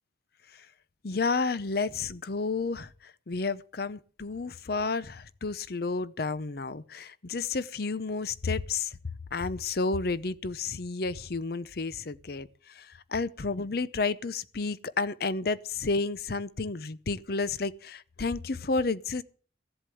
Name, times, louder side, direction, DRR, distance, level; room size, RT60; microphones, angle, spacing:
voice 1, 1.0-9.0 9.3-19.2, left 4 dB, 55° left, 0.7 m, -31 dB
15.5 x 8.0 x 7.8 m
head